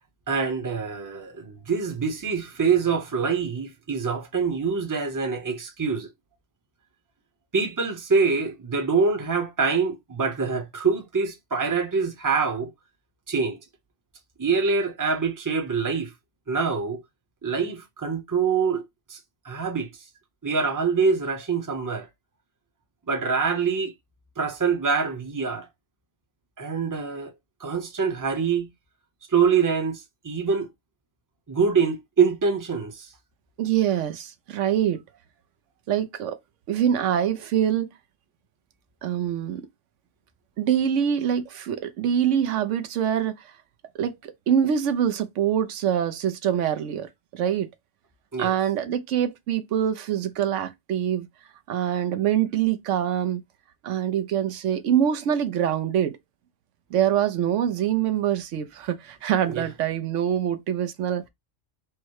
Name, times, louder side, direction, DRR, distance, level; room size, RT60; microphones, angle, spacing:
voice 1, 0.3-6.1 7.5-12.7 13.3-13.6 14.4-16.1 16.5-17.0 17.4-18.8 19.1-19.2 19.4-19.9 20.4-22.1 23.1-23.9 24.4-25.7 26.6-27.3 27.6-28.7 29.3-30.7 31.5-33.1 48.3-48.6 59.5-59.6, right 5 dB, 20° right, 0.7 m, -25 dB
voice 2, 33.6-35.0 35.9-36.4 36.7-37.9 39.0-39.7 40.6-43.6 44.0-47.7 48.4-51.3 51.7-53.4 53.8-56.2 56.9-61.3, right 9 dB, 85° right, 1.0 m, -24 dB
4.6 x 2.1 x 4.6 m
omnidirectional pair, 1.2 m